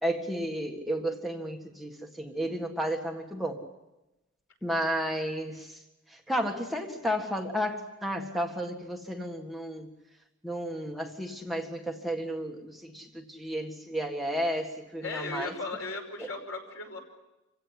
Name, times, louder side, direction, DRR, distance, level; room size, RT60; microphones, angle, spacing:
voice 1, 0.0-3.6 4.6-5.8 6.1-9.9 10.4-15.5 16.2-16.3, equal, ahead, 1 dB, 1.9 m, -32 dB
voice 2, 15.0-17.0, left 3 dB, 70° left, 3 dB, 5.6 m, -36 dB
27.5 x 17.0 x 10.0 m, 1.0 s
head